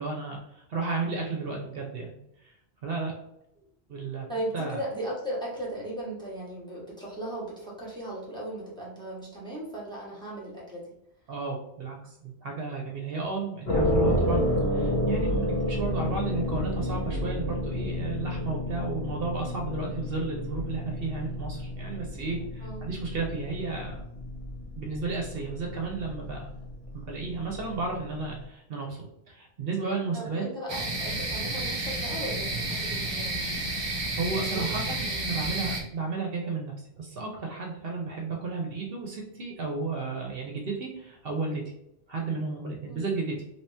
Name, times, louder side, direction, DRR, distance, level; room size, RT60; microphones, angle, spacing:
voice 1, 0.0-2.1 2.4-2.5 2.8-3.1 3.9-4.3 4.5-4.8 11.3-14.4 14.7-23.9 24.8-26.5 26.9-30.4 34.2-41.6 42.1-43.5, right 4 dB, 65° right, 1 dB, 0.8 m, -33 dB
voice 2, 4.3-10.9 22.6-22.9 30.1-33.7 34.5-35.4 42.9-43.2, right 1 dB, 5° left, -5 dB, 1.1 m, -37 dB
sound 1, 13.6-28.4, left 1 dB, 65° left, 1.1 m, -31 dB
sound 2, 30.7-35.8, right 2 dB, 30° right, 0.5 m, -31 dB
3.0 x 2.9 x 3.3 m, 0.80 s
omnidirectional pair, 1.1 m